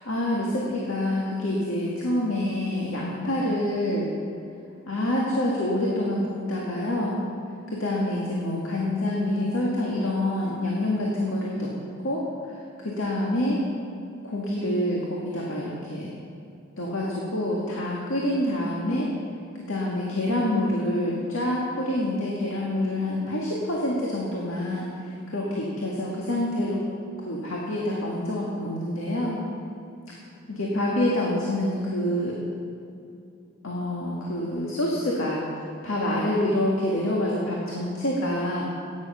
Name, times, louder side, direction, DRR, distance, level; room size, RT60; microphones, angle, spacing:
voice 1, 0.0-4.1 4.9-7.2 7.8-11.7 12.0-12.6 12.8-13.6 14.2-16.1 16.8-19.1 19.7-26.8 27.2-29.4 30.5-32.4 33.6-35.4 35.8-38.6, left 1 dB, 75° left, -4 dB, 1.9 m, -27 dB
15.5 x 9.5 x 5.6 m, 2.6 s
head